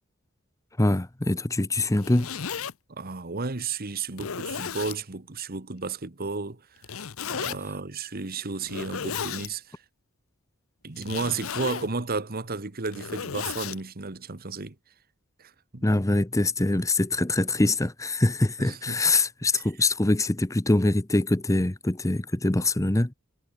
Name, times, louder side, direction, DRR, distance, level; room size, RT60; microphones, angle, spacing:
voice 1, 0.8-2.3 15.8-23.1, left 2 dB, 15° left, 0.8 m, -24 dB
Zipper (clothing), 1.8-2.7 3.4-3.5 4.1-5.0 6.8-7.6 8.6-9.5 11.0-11.9 12.7-13.8, left 7 dB, 75° left, 0.8 m, -34 dB
voice 2, 2.9-6.8 7.3-9.8 10.8-14.7 15.4-15.8 18.6-19.0, right 4 dB, 45° right, 1.4 m, -33 dB
head